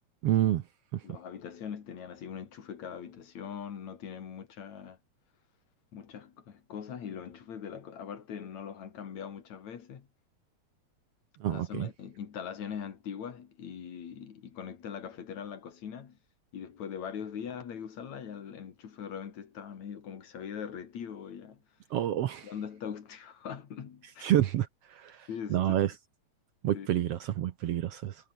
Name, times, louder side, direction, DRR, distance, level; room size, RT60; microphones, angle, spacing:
voice 1, 0.2-0.6 11.4-11.9 21.9-22.5 24.2-24.7 25.0-25.1 25.5-25.9 26.6-28.1, right 12 dB, 65° right, 1.7 m, -27 dB
voice 2, 1.0-5.0 5.9-10.1 11.5-16.2 16.5-21.6 22.4-24.3 25.3-25.8 26.7-26.9, left 7 dB, 65° left, 3.6 m, -41 dB
omnidirectional pair, 3.4 m